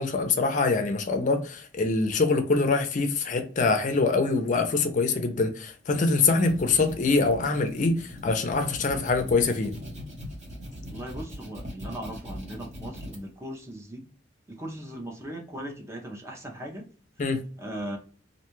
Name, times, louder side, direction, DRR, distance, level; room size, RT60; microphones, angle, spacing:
voice 1, 0.0-9.7 17.2-17.4, left 3 dB, 40° left, 0.5 m, -24 dB
sound 1, 6.2-13.2, equal, 40° right, 1.0 m, -40 dB
voice 2, 10.9-14.1 14.5-16.9 17.6-18.0, right 1 dB, 15° right, 0.5 m, -38 dB
2.5 x 2.3 x 2.9 m
head